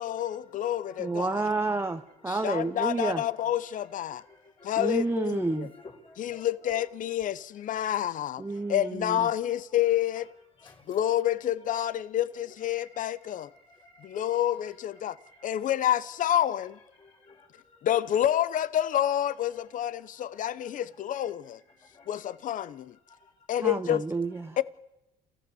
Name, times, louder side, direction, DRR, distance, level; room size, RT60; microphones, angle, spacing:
voice 1, 0.0-1.4 2.3-4.2 4.6-5.7 6.2-8.4 8.7-10.3 10.9-13.5 14.0-15.2 15.4-16.8 17.8-21.6 22.1-23.0 23.5-24.0 24.6-24.7, left 11 dB, 50° left, 0.7 m, -28 dB
voice 2, 1.0-3.2 4.8-5.7 8.4-9.3 23.6-24.6, right 3 dB, 15° right, 0.8 m, -30 dB
voice 3, 4.1-4.9 5.5-6.5 10.6-10.9 12.7-13.0 13.4-14.2 15.0-15.4 17.0-17.8 21.8-22.1 23.1-23.3, left 3 dB, 30° left, 5.1 m, -54 dB
29.0 x 15.0 x 6.9 m
cardioid pair, 110°, 17 cm